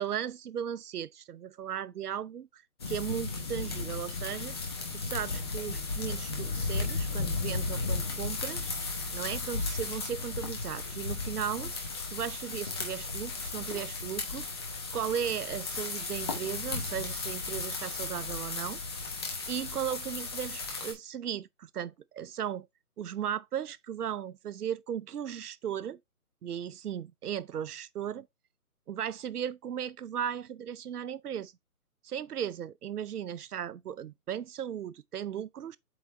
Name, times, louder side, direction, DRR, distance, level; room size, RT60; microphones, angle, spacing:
voice 1, 0.0-2.6 2.9-4.6 4.9-8.7 9.1-11.7 12.1-14.5 14.9-18.8 19.5-22.7 23.0-26.0 26.4-28.3 28.9-31.5 32.0-35.8, right 9 dB, 90° right, 0.6 m, -36 dB
sound 1, 2.8-20.9, left 3 dB, 15° left, 1.0 m, -35 dB
8.0 x 3.8 x 3.2 m
hypercardioid pair, 165°, 45 cm